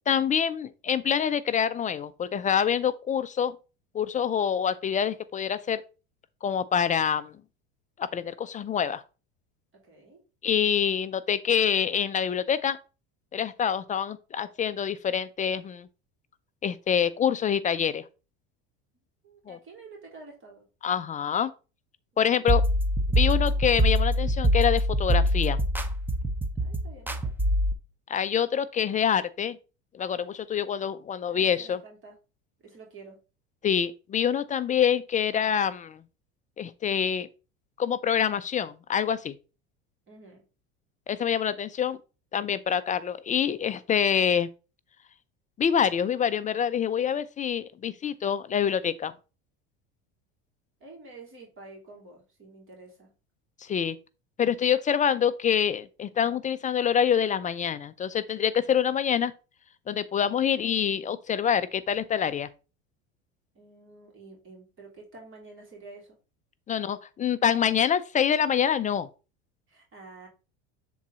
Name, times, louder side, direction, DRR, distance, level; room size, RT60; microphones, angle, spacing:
voice 1, 0.1-3.5 3.9-5.8 6.4-7.3 8.0-9.0 10.4-12.8 13.3-15.9 16.6-18.0 19.5-19.6 20.8-21.5 22.2-22.6 23.1-25.6 28.1-29.6 29.9-31.8 33.6-36.0 36.6-37.3 37.8-39.3 41.1-42.0 42.3-44.5 45.6-49.1 53.6-54.0 54.4-59.3 59.9-62.5 66.7-69.1, left 8 dB, 25° left, 0.4 m, -26 dB
voice 2, 9.8-10.2 19.2-20.7 22.1-22.5 26.6-27.3 31.3-32.2 32.6-33.2 40.1-40.4 50.8-53.1 63.5-66.2 68.4-68.5 69.7-70.3, right 3 dB, 35° right, 3.3 m, -49 dB
sound 1, 22.5-27.7, equal, 5° right, 0.8 m, -24 dB
7.2 x 3.8 x 4.2 m
supercardioid pair, 110°, 34 cm